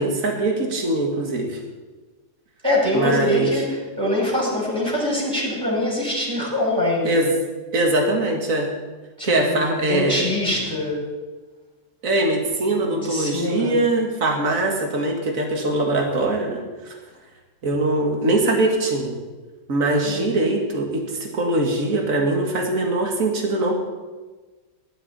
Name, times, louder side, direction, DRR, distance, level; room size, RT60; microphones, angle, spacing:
voice 1, 0.0-1.6 2.9-3.5 7.0-7.3 7.7-8.7 9.2-10.2 12.0-16.9 17.6-19.1 19.7-23.7, right 2 dB, 50° right, 1 dB, 2.3 m, -22 dB
voice 2, 2.6-7.3 9.2-9.6 9.9-11.0 12.8-13.8 20.0-20.2, left 1 dB, 15° right, -5 dB, 5.6 m, -24 dB
18.0 x 12.0 x 4.2 m, 1.3 s
omnidirectional pair, 1.8 m